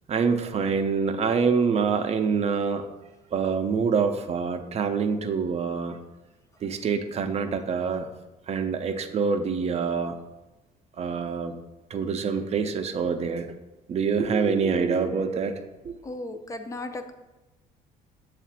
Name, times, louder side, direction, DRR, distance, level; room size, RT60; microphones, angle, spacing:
voice 1, 0.1-2.8 3.3-6.0 6.6-8.1 8.5-10.2 11.0-11.6 11.9-13.5 13.9-15.6 15.8-16.0, right 5 dB, 40° right, 7 dB, 0.6 m, -26 dB
voice 2, 16.0-17.1, left 2 dB, 20° left, 7 dB, 0.5 m, -35 dB
7.2 x 2.5 x 5.7 m, 1.1 s
cardioid pair, 110°, 17 cm